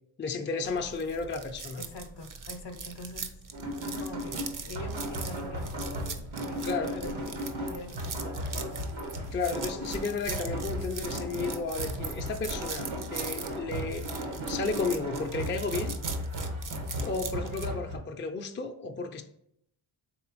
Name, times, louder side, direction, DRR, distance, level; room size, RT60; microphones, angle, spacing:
voice 1, 0.2-1.8 6.6-7.1 9.3-16.0 17.0-19.2, left 4 dB, 25° left, 4 dB, 0.4 m, -33 dB
sound 1, 0.6-17.7, right 5 dB, 40° right, 0.6 m, -41 dB
voice 2, 1.8-3.4 3.8-8.9 15.6-15.7, left 2 dB, 55° left, 7 dB, 0.7 m, -44 dB
sound 2, 3.5-18.0, equal, 75° right, 1.1 m, -36 dB
4.1 x 3.3 x 3.0 m, 0.72 s
cardioid pair, 50°, 50 cm